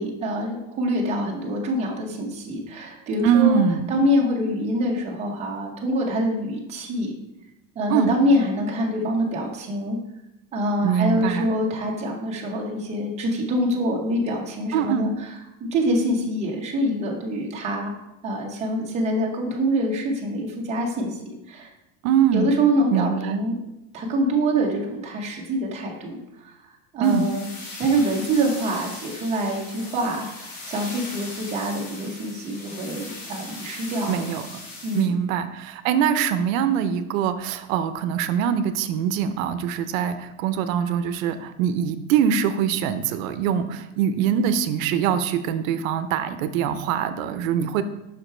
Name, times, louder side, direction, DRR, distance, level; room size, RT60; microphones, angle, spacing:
voice 1, 0.0-3.6 3.9-7.1 7.8-10.0 10.5-15.1 15.6-17.9 18.2-21.7 22.3-23.6 23.9-26.5 26.9-27.5 27.8-34.3 34.8-35.2, equal, 15° right, -2 dB, 0.9 m, -25 dB
voice 2, 3.2-3.9 7.9-8.1 10.8-11.5 14.7-15.1 22.0-22.5 22.9-23.4 27.0-27.2 34.1-34.5 34.9-47.8, right 8 dB, 85° right, 10 dB, 0.6 m, -23 dB
sound 1, 27.0-35.0, left 2 dB, 85° left, 2.2 m, -39 dB
5.8 x 5.1 x 4.3 m, 0.91 s
cardioid pair, 175°, 39 cm